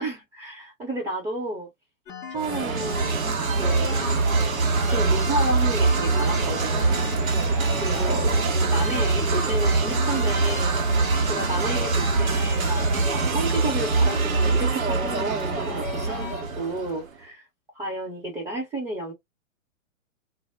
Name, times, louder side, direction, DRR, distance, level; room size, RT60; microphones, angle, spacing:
voice 1, 0.0-1.7 2.3-4.0 4.9-7.1 7.8-8.3 8.6-11.0 11.3-12.9 13.3-17.5 17.7-19.1, right 1 dB, 10° right, 0.8 m, -32 dB
sound 1, 2.1-16.4, left 5 dB, 15° left, 0.4 m, -38 dB
sound 2, 2.4-17.1, right 3 dB, 85° right, 0.8 m, -23 dB
2.1 x 2.0 x 3.4 m
hypercardioid pair, 120°, 40 cm